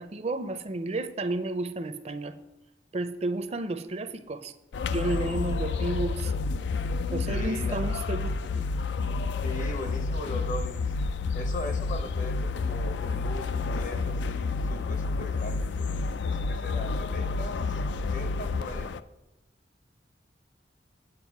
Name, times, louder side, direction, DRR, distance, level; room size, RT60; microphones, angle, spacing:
voice 1, 0.0-2.3 2.9-4.5 4.9-6.3 7.1-8.7, right 2 dB, 35° right, 10 dB, 0.5 m, -32 dB
sound 1, 4.7-19.0, left 4 dB, 75° left, 0.4 m, -30 dB
voice 2, 7.2-7.8 9.4-10.9 11.3-15.9 16.2-18.9, left 2 dB, 45° left, 7 dB, 0.9 m, -39 dB
9.0 x 4.9 x 5.9 m, 1.0 s
head